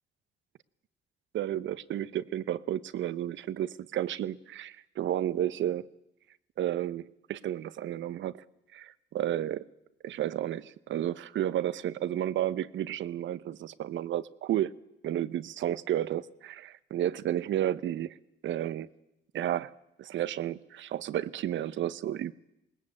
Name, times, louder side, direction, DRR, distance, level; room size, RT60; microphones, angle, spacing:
voice 1, 1.3-5.9 6.6-8.4 8.7-9.7 10.0-14.7 15.0-18.2 18.4-18.9 19.3-19.7 20.0-22.3, right 11 dB, 70° right, 0.9 m, -32 dB
21.5 x 19.5 x 8.7 m
cardioid pair, 90°, 20 cm